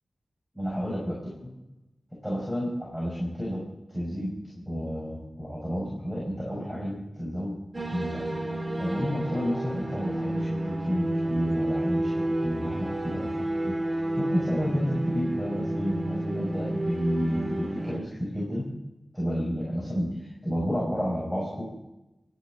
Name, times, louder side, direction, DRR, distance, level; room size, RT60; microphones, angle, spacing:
voice 1, 0.5-1.5 2.2-3.6 3.9-8.3 8.8-18.7 19.1-21.6, equal, ahead, -4 dB, 5.6 m, -31 dB
sound 1, 7.7-18.0, right 1 dB, 35° right, 1.8 m, -30 dB
29.0 x 11.0 x 3.9 m, 0.95 s
wide cardioid pair, 100°, 0 cm